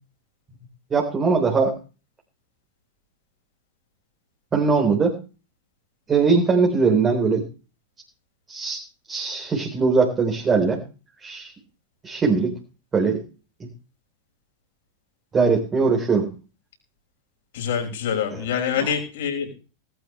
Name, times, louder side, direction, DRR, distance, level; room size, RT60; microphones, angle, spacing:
voice 1, 0.9-1.7 4.5-5.1 6.1-7.4 8.5-8.8 9.1-10.8 11.2-11.5 12.0-12.5 12.9-13.2 15.3-16.3 18.3-18.4 18.8-18.9, right 4 dB, 20° right, 0 dB, 4.2 m, -20 dB
voice 2, 17.5-19.5, left 7 dB, 55° left, 3 dB, 5.9 m, -25 dB
19.5 x 13.0 x 3.4 m, 0.34 s
figure-of-eight pair, 90°, 0 cm